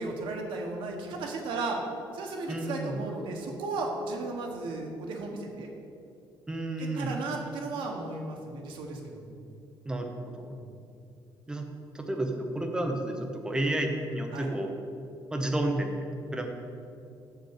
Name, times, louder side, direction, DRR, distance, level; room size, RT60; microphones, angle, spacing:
voice 1, 0.0-1.8 2.1-5.7 6.8-9.4 10.4-10.7 14.3-14.5, right 3 dB, 80° right, 1 dB, 1.4 m, -35 dB
voice 2, 2.5-3.0 6.5-7.1 9.9-10.6 11.5-11.7 11.9-14.7 15.3-16.5, right 1 dB, 10° right, 3 dB, 0.9 m, -31 dB
7.1 x 6.5 x 6.5 m, 2.5 s
cardioid pair, 160°, 8 cm